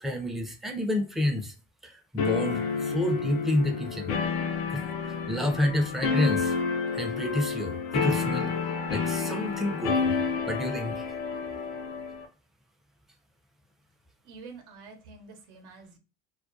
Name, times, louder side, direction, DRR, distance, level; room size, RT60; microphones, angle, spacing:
voice 1, 0.0-1.5 1.8-4.1 4.7-6.5 6.9-8.5 8.9-10.1 10.5-11.1, left 1 dB, ahead, 0.4 m, -29 dB
sound 1, 2.2-12.3, left 5 dB, 85° left, 0.6 m, -30 dB
voice 2, 14.2-16.0, right 4 dB, 75° right, 0.8 m, -47 dB
2.3 x 2.2 x 2.5 m
supercardioid pair, 80°, 31 cm